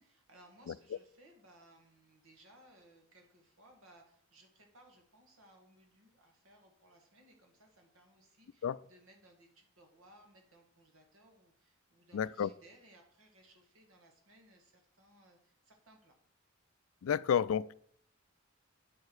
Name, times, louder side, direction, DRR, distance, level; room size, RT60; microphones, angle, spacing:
voice 1, 0.0-16.2, right 1 dB, 85° right, 2.1 m, -62 dB
voice 2, 12.1-12.5 17.0-17.7, left 8 dB, 75° left, 0.3 m, -31 dB
9.0 x 6.6 x 4.8 m
head